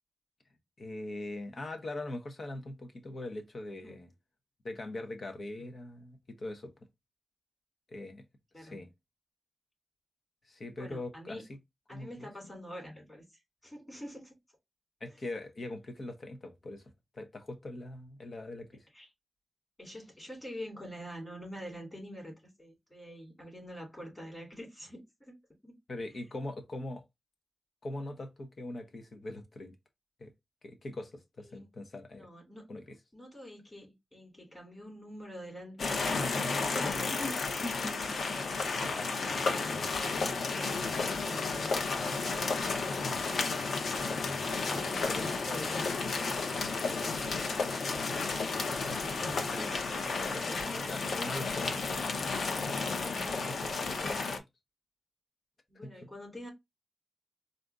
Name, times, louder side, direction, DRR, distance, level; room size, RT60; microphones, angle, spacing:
voice 1, 0.8-4.1 4.6-6.7 7.9-8.2 8.6-8.9 10.5-11.4 11.9-12.5 15.0-18.9 25.9-27.0 27.8-29.7 30.2-30.3 30.6-32.3 32.7-32.8 37.1-38.4 44.7-45.3 49.5-49.7 50.3-51.9 53.1-54.4 55.8-56.1, left 2 dB, 50° left, 0.9 m, -41 dB
voice 2, 3.7-4.0 8.5-8.8 10.7-11.4 11.9-14.3 18.9-19.1 19.8-25.3 25.6-25.7 31.4-31.7 32.1-32.6 33.1-37.1 38.6-42.0 42.6-43.7 44.0-45.8 46.9-47.7 48.0-50.6 55.7-56.5, equal, 20° left, 3.1 m, -47 dB
sound 1, 35.8-54.4, left 4 dB, 85° left, 0.8 m, -32 dB
4.2 x 2.6 x 3.5 m
wide cardioid pair, 125°, 0 cm